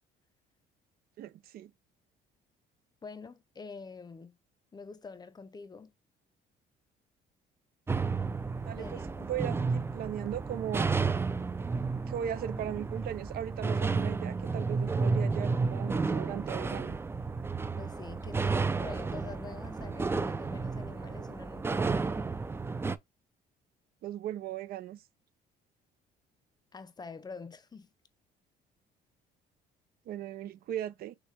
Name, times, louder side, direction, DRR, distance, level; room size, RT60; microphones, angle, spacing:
voice 1, 1.2-1.7 8.6-10.9 12.1-17.0 24.0-25.0 30.1-31.1, right 11 dB, 65° right, 0.6 m, -38 dB
voice 2, 3.0-4.4 4.7-5.9 8.8-9.3 17.8-22.2 26.7-27.9, left 4 dB, 25° left, 0.7 m, -46 dB
sound 1, 7.9-23.0, right 4 dB, 15° right, 0.4 m, -32 dB
6.4 x 2.3 x 3.3 m
cardioid pair, 110°, 17 cm